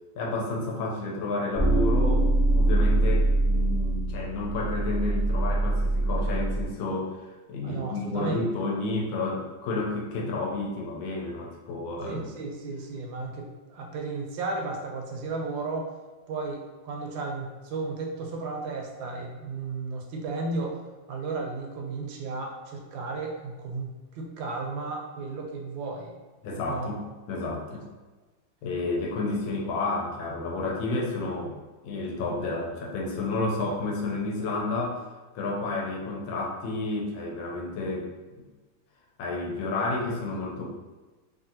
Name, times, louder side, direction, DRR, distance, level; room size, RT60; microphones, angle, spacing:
voice 1, 0.2-2.3 2.6-7.2 7.5-12.2 26.4-27.0 27.3-27.9 28.6-31.5 31.8-35.1 35.3-38.1 39.2-40.7, left 2 dB, 85° left, -1 dB, 1.4 m, -30 dB
sound 1, 1.5-6.6, right 2 dB, 40° left, 0.7 m, -24 dB
voice 2, 7.6-8.4 12.0-15.9 16.3-20.8 21.1-26.1 26.7-26.9 27.7-27.8, right 3 dB, 80° right, 1 dB, 1.3 m, -34 dB
3.0 x 2.6 x 2.7 m, 1.2 s
omnidirectional pair, 2.1 m